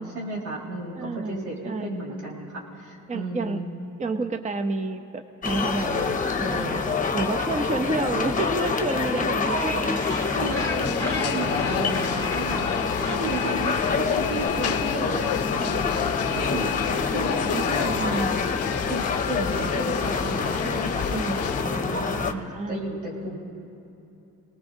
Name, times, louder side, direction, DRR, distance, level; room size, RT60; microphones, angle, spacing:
voice 1, 0.0-3.7 9.2-9.3 9.7-10.0 10.3-10.7 11.0-18.3 18.9-23.4, right 2 dB, 80° right, -4 dB, 4.5 m, -33 dB
voice 2, 1.0-2.0 3.1-3.6 4.0-10.0 10.6-11.1 15.5-15.8 17.5-18.4 21.1-21.5 22.3-22.8, right 3 dB, 25° right, 8 dB, 0.6 m, -30 dB
sound 1, 5.4-22.3, left 4 dB, 25° left, 1.0 m, -27 dB
Gull seagull, 9.5-14.5, left 2 dB, 10° left, 1.7 m, -36 dB
sound 2, 10.6-21.6, left 11 dB, 55° left, 0.5 m, -31 dB
28.0 x 19.0 x 2.7 m, 2.8 s
cardioid pair, 90°, 30 cm